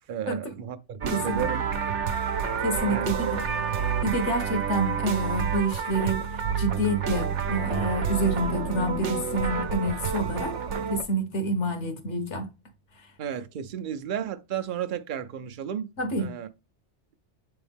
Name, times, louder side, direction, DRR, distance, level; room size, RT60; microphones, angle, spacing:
voice 1, 0.1-1.7 2.9-3.1 13.2-15.9 16.2-16.5, right 9 dB, 50° right, 0.7 m, -33 dB
sound 1, 1.0-11.0, right 7 dB, 75° right, 1.0 m, -29 dB
voice 2, 1.1-1.5 2.6-3.4 4.0-6.2 6.6-10.6 10.9-12.5 16.0-16.3, right 1 dB, 70° left, 1.4 m, -28 dB
7.7 x 3.5 x 3.5 m
omnidirectional pair, 1.2 m